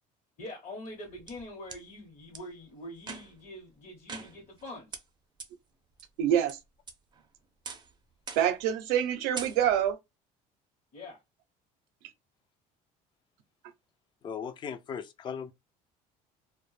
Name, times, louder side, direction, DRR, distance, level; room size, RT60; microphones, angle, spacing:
voice 1, 0.4-5.0 10.9-11.2, left 1 dB, 45° left, 0.8 m, -44 dB
sound 1, 0.8-1.8 2.3-2.4 3.0-3.5 4.1-4.6 4.9-5.0 5.4-5.5 6.0-6.5 6.9-7.3 7.6-7.9 8.3-8.6 8.9-9.1 9.3-9.9, right 5 dB, 30° right, 0.5 m, -43 dB
voice 2, 6.2-6.6 8.4-10.0, right 10 dB, 90° right, 0.5 m, -26 dB
voice 3, 14.2-15.5, left 7 dB, 30° left, 0.3 m, -37 dB
2.1 x 2.0 x 3.0 m
cardioid pair, 110°, 16 cm